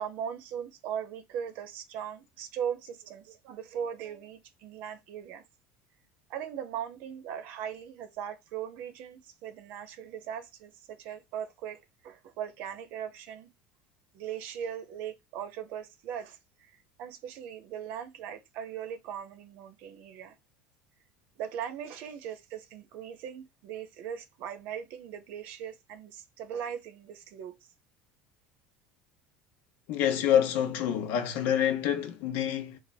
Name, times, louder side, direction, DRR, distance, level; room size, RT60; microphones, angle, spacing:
voice 1, 0.0-5.4 6.3-11.8 12.0-13.5 14.1-16.4 17.0-20.3 21.4-27.5, right 8 dB, 60° right, 0.7 m, -39 dB
voice 2, 29.9-32.8, left 10 dB, 60° left, 0.9 m, -27 dB
3.5 x 2.5 x 4.1 m
cardioid pair, 145°, 3 cm